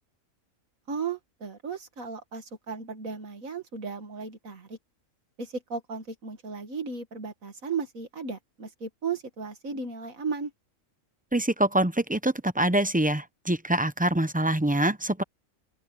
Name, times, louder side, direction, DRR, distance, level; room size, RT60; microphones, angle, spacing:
voice 1, 0.9-4.8 5.4-10.5, right 5 dB, 80° right, 2.4 m, -35 dB
voice 2, 11.3-15.2, right 1 dB, 10° right, 0.5 m, -25 dB
open air
omnidirectional pair, 1.4 m